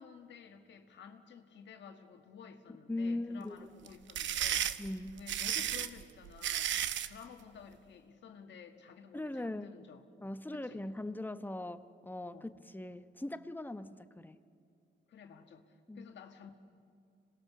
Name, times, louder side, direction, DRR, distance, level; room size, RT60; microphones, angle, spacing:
voice 1, 0.0-4.8 5.2-10.0 10.6-10.8 12.2-12.5 15.1-16.5, left 6 dB, 65° left, 5 dB, 1.8 m, -53 dB
voice 2, 2.9-3.7 4.8-5.2 9.1-9.7 10.2-14.4 15.9-16.1, left 2 dB, 10° left, 10 dB, 1.1 m, -40 dB
sound 1, 3.9-7.2, right 10 dB, 70° right, 0.9 m, -33 dB
26.5 x 20.0 x 6.9 m, 2.4 s
cardioid pair, 90°, 20 cm